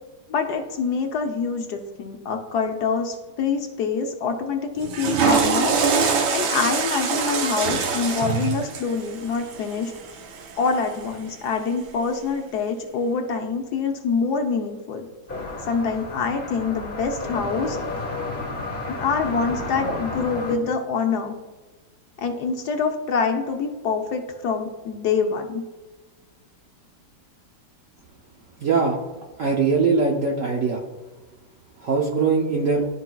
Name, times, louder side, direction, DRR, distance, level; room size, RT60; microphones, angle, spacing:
voice 1, 0.3-9.9 10.6-15.1 15.7-17.8 19.0-21.4 22.2-25.6, left 5 dB, 65° left, 4 dB, 1.1 m, -25 dB
Water / Toilet flush, 4.8-11.0, right 5 dB, 85° right, 1.5 m, -24 dB
sound 1, 15.3-20.5, left 2 dB, 10° left, 0.9 m, -31 dB
voice 2, 28.6-29.0 29.4-30.8 31.8-32.9, right 4 dB, 65° right, -1 dB, 0.8 m, -21 dB
12.0 x 4.5 x 2.3 m, 1.2 s
omnidirectional pair, 2.1 m